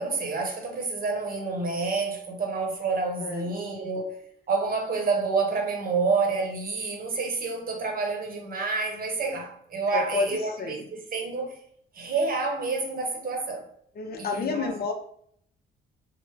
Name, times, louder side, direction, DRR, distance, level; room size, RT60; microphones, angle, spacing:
voice 1, 0.0-4.2 4.5-11.6 11.9-13.7 14.2-14.8, right 4 dB, 45° right, 0.8 m, -28 dB
voice 2, 9.9-10.2 10.6-10.8 14.0-14.9, left 4 dB, 50° left, 0.5 m, -29 dB
3.2 x 2.0 x 3.2 m
cardioid pair, 90°, 20 cm